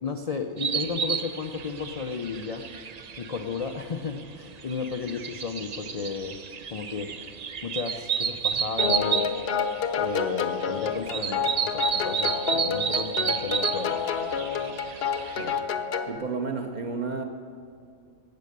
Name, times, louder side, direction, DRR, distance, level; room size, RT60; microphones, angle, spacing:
voice 1, 0.0-2.6 3.2-6.4 6.7-7.1 7.6-9.3 9.9-14.0, left 5 dB, 75° left, 5 dB, 0.3 m, -33 dB
sound 1, 0.6-15.6, right 7 dB, 85° right, 0.3 m, -31 dB
sound 2, 8.8-16.2, left 6 dB, 55° left, 0.8 m, -29 dB
voice 2, 16.1-17.2, right 4 dB, 40° right, 5 dB, 0.7 m, -32 dB
12.0 x 8.4 x 6.6 m, 2.4 s
omnidirectional pair, 1.4 m